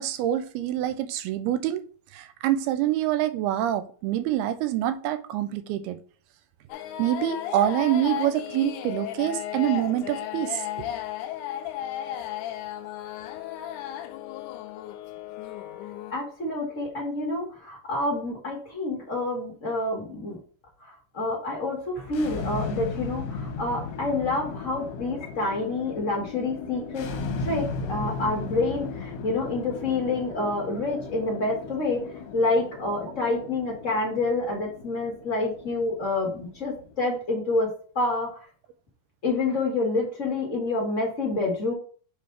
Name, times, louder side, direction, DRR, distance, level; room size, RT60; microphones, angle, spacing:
voice 1, 0.0-1.9 2.1-6.0 7.0-10.6, right 12 dB, 85° right, 2.7 m, -26 dB
sound 1, 6.7-16.1, left 11 dB, 85° left, 1.8 m, -34 dB
voice 2, 16.1-20.4 21.1-27.1 27.4-32.0 32.3-38.4 39.2-41.7, left 2 dB, 30° left, 1.4 m, -28 dB
sound 2, 22.0-37.0, left 4 dB, 70° left, 2.3 m, -36 dB
6.6 x 5.2 x 3.3 m
omnidirectional pair, 4.5 m